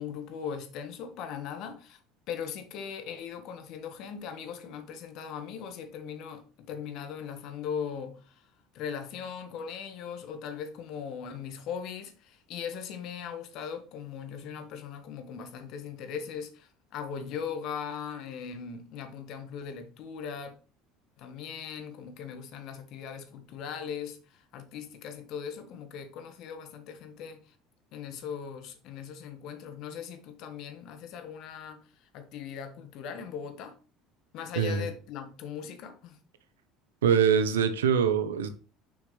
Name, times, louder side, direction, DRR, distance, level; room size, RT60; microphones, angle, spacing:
voice 1, 0.0-2.0 2.3-20.6 21.2-27.5 27.9-33.7 34.3-36.2, left 7 dB, 60° left, 1.3 m, -39 dB
voice 2, 34.6-34.9 37.0-38.5, right 7 dB, 90° right, 0.7 m, -24 dB
6.3 x 6.1 x 3.2 m
hypercardioid pair, 75°, 0 cm